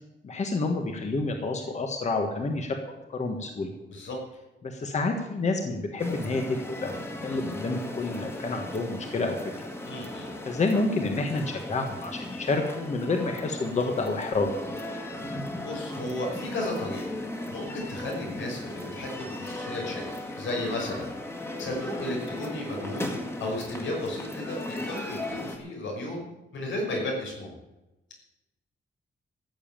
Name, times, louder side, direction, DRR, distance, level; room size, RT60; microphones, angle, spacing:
voice 1, 0.2-2.8 3.1-3.7 4.6-6.4 6.7-7.0 7.2-9.7 10.5-14.5, left 3 dB, 35° left, 4 dB, 1.5 m, -29 dB
sound 1, 6.0-25.6, left 1 dB, 15° left, 1.9 m, -37 dB
voice 2, 9.9-10.3 15.6-17.1 17.5-20.1 20.4-21.1 21.6-23.1 23.4-26.3 26.5-27.5, left 1 dB, 90° left, 0 dB, 5.9 m, -34 dB
14.5 x 7.3 x 8.9 m, 0.99 s
wide cardioid pair, 170°, 19 cm